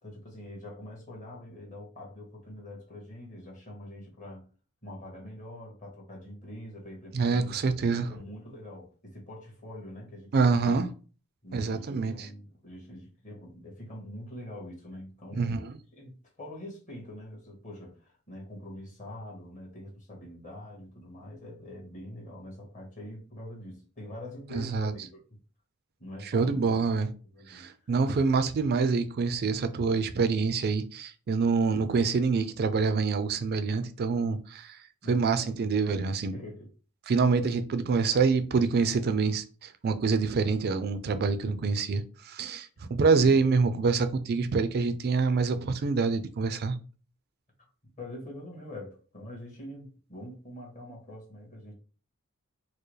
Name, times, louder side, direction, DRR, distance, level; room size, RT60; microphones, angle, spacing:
voice 1, 0.0-4.4 4.8-10.8 11.4-15.6 15.9-25.2 26.0-26.6 27.3-27.7 35.0-35.7 36.3-36.7 48.0-51.7, left 1 dB, 35° left, 1.3 m, -44 dB
voice 2, 7.1-8.1 10.3-10.9 11.5-12.3 15.4-15.7 24.5-24.9 26.3-27.1 27.5-34.8 35.1-36.3 37.1-46.8, right 4 dB, 45° right, 0.4 m, -26 dB
4.5 x 2.0 x 3.1 m
head